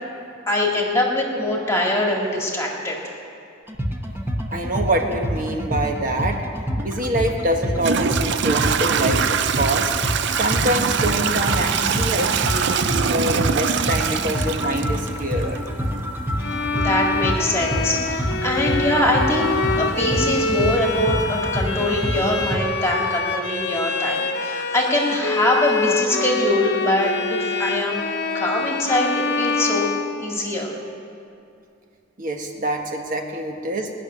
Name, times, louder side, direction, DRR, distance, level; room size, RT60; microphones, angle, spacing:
voice 1, 0.5-3.1 16.7-28.0 28.3-29.9 30.2-30.7, left 1 dB, 15° left, -1 dB, 1.9 m, -23 dB
sound 1, 3.7-22.6, equal, 10° right, 1.1 m, -27 dB
voice 2, 4.5-6.4 6.8-9.9 10.3-15.6 32.2-33.9, right 1 dB, 45° right, 3 dB, 1.5 m, -25 dB
Toilet flush / Trickle dribble, 7.0-7.1 7.8-15.6, right 7 dB, 60° right, 0.5 m, -23 dB
Bowed string instrument, 16.4-30.7, left 4 dB, 55° left, 1.0 m, -26 dB
19.0 x 6.6 x 9.9 m, 2.6 s
head